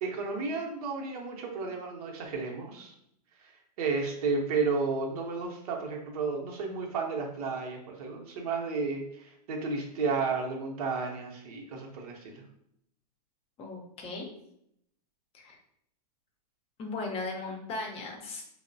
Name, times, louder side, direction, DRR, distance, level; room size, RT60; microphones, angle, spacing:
voice 1, 0.0-2.9 3.4-3.5 3.8-12.4, right 4 dB, 65° right, 1 dB, 0.8 m, -32 dB
voice 2, 13.6-14.3 15.3-15.6 16.8-18.4, left 3 dB, 30° left, 2 dB, 0.6 m, -37 dB
2.9 x 2.0 x 2.6 m, 0.73 s
hypercardioid pair, 115°, 21 cm